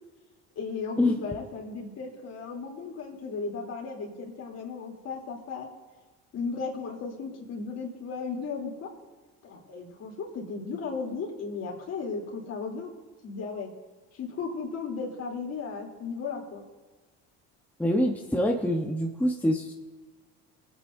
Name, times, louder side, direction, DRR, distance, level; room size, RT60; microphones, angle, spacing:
voice 1, 0.5-5.7 6.3-8.9 9.4-12.9 13.2-13.7 14.1-16.6, left 4 dB, 50° left, -1 dB, 3.4 m, -35 dB
voice 2, 17.8-19.7, left 1 dB, 5° left, 0 dB, 1.1 m, -25 dB
23.0 x 9.0 x 2.8 m, 1.3 s
supercardioid pair, 95°, 33 cm